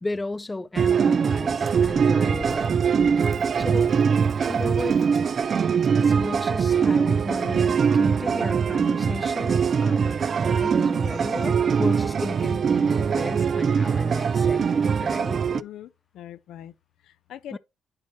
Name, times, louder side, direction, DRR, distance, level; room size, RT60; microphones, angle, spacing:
voice 1, 0.0-2.8 3.6-4.0 4.5-5.0 6.0-15.4 17.5-17.6, left 2 dB, 20° left, 0.4 m, -34 dB
sound 1, 0.8-15.6, right 6 dB, 50° right, 0.4 m, -22 dB
sound 2, 1.6-6.8, right 1 dB, 15° right, 1.5 m, -46 dB
voice 2, 15.5-16.7 17.3-17.6, left 11 dB, 80° left, 0.4 m, -41 dB
11.0 x 4.4 x 2.9 m
cardioid pair, 90°, 0 cm